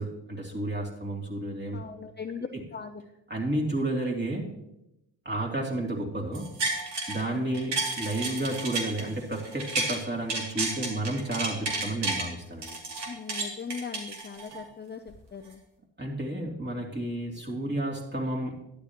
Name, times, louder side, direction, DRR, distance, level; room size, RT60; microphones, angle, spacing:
voice 1, 0.0-1.8 2.5-2.6 3.3-4.5 5.2-6.5 7.1-12.8 16.0-18.6, right 1 dB, 25° right, -1 dB, 2.8 m, -31 dB
voice 2, 1.7-3.0 13.1-15.0 15.3-15.6, left 5 dB, 25° left, 5 dB, 0.6 m, -39 dB
sound 1, 6.3-7.2 7.5-10.0 10.3-12.3 12.6-14.6 15.1-15.2, right 3 dB, 65° right, 2.7 m, -31 dB
11.5 x 9.8 x 3.0 m, 0.88 s
supercardioid pair, 60°, 46 cm